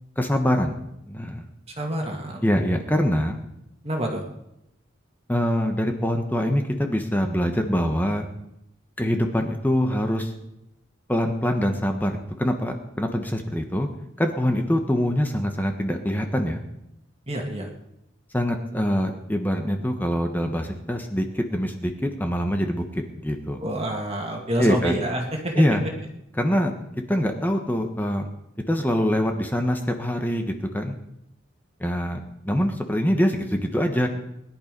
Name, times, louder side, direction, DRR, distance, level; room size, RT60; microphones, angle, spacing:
voice 1, 0.2-0.8 1.1-1.5 2.4-3.4 5.3-8.3 9.0-10.3 11.1-12.1 12.4-13.9 14.2-16.6 18.3-23.6 24.6-25.0 25.5-25.8 26.4-26.7 27.1-28.3 28.7-31.0 31.8-34.1, equal, 10° left, 4 dB, 1.2 m, -24 dB
voice 2, 1.8-2.4 3.8-4.2 17.3-17.7 23.6-25.6, right 1 dB, 30° right, 1 dB, 2.1 m, -28 dB
20.5 x 11.0 x 5.3 m, 0.85 s
head